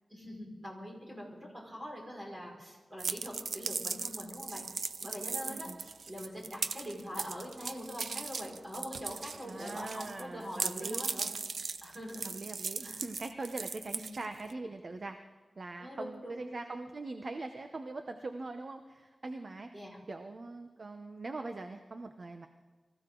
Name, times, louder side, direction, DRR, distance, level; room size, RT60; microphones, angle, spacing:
voice 1, 0.1-4.7 5.0-5.7 6.1-11.3 11.8-12.5 12.8-13.0 13.9-14.1 15.8-16.4 19.7-20.0, equal, 25° right, -2 dB, 5.5 m, -43 dB
sound 1, 3.0-10.2 10.5-14.5, right 4 dB, 75° right, 0.6 m, -38 dB
voice 2, 5.5-5.9 9.4-11.0 12.2-15.2 15.6-19.7 20.1-22.5, right 3 dB, 45° right, 6 dB, 0.8 m, -42 dB
24.5 x 15.0 x 3.9 m, 1.3 s
wide cardioid pair, 110°, 0 cm